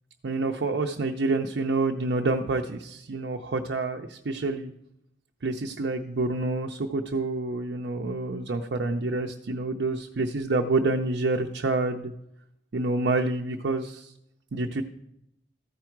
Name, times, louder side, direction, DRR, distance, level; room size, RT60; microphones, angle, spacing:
voice 1, 0.2-4.7 5.4-12.1 12.7-14.1 14.5-14.8, right 2 dB, 70° right, 3 dB, 0.6 m, -28 dB
14.0 x 4.8 x 4.5 m, 0.79 s
head